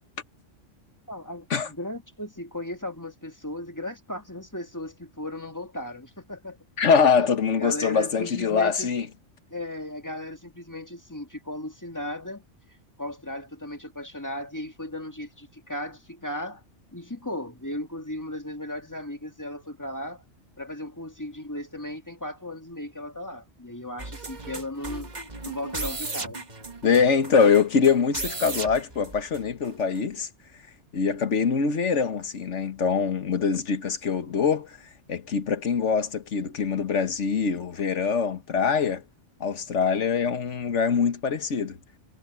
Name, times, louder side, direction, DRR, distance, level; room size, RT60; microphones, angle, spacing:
voice 1, 1.1-6.6 7.5-8.9 9.5-12.4 13.0-16.6 16.9-20.2 20.6-25.1 25.4-26.4, left 1 dB, 15° left, 1.8 m, -36 dB
voice 2, 6.8-9.1 26.8-30.3 30.9-34.8 35.1-39.0 39.4-41.8, left 6 dB, 75° left, 1.7 m, -23 dB
sound 1, 24.0-29.7 29.9-30.0, right 3 dB, 35° right, 1.8 m, -36 dB
omnidirectional pair, 1.2 m